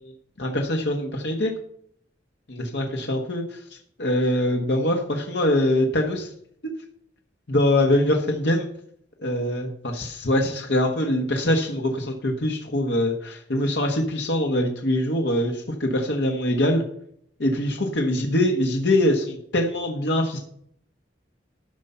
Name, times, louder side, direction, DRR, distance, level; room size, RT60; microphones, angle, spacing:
voice 1, 0.4-1.5 2.5-6.3 7.5-8.7 9.2-16.8 17.4-20.4, left 1 dB, 70° left, 2 dB, 1.4 m, -23 dB
12.5 x 5.7 x 5.5 m, 0.67 s
head